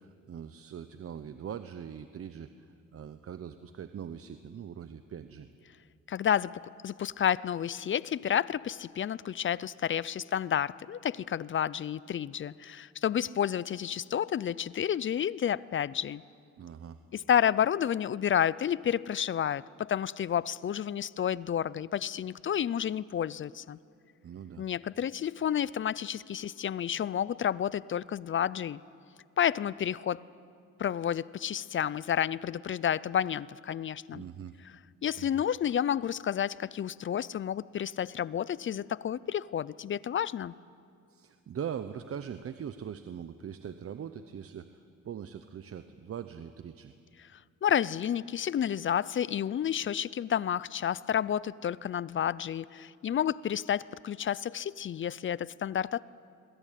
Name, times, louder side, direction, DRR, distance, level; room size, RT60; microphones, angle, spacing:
voice 1, 0.0-5.5 16.6-17.0 24.2-24.7 34.1-34.6 35.2-35.4 41.1-46.9, right 8 dB, 50° right, 11 dB, 1.0 m, -42 dB
voice 2, 6.1-16.2 17.1-23.8 24.6-28.8 29.4-30.2 30.8-34.2 35.0-40.5 47.6-56.0, left 9 dB, 40° left, 20 dB, 0.5 m, -30 dB
22.0 x 22.0 x 9.3 m, 2.4 s
cardioid pair, 90°, 30 cm